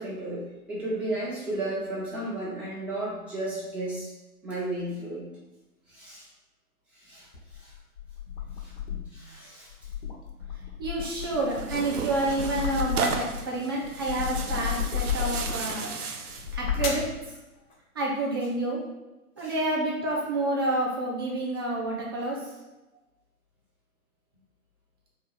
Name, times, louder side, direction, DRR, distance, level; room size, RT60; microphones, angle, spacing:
voice 1, 0.0-4.1 4.4-5.2 5.9-6.3 7.0-7.3 7.5-7.7 8.6-8.7 9.1-9.7 19.4-19.5, right 1 dB, 5° right, -9 dB, 0.9 m, -33 dB
sound 1, 7.3-9.2 9.7-13.4 13.8-15.7 16.3-17.1, left 8 dB, 35° left, 0.7 m, -33 dB
voice 2, 10.8-15.8 16.5-17.0 17.9-18.8 19.4-22.4, right 2 dB, 20° right, -4 dB, 0.4 m, -29 dB
Tearing, 11.2-16.5, right 5 dB, 80° right, 0.6 m, -34 dB
3.5 x 2.4 x 4.5 m, 1.0 s
figure-of-eight pair, 120°, 45 cm